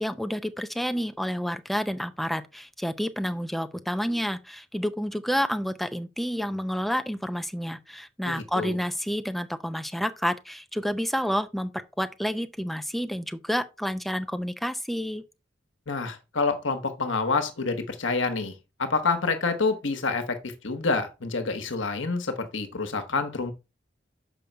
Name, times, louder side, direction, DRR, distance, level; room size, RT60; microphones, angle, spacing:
voice 1, 0.0-15.2, equal, ahead, 0.6 m, -29 dB
voice 2, 8.2-8.8 15.9-23.5, left 4 dB, 70° left, 1.2 m, -28 dB
6.9 x 5.3 x 4.5 m
head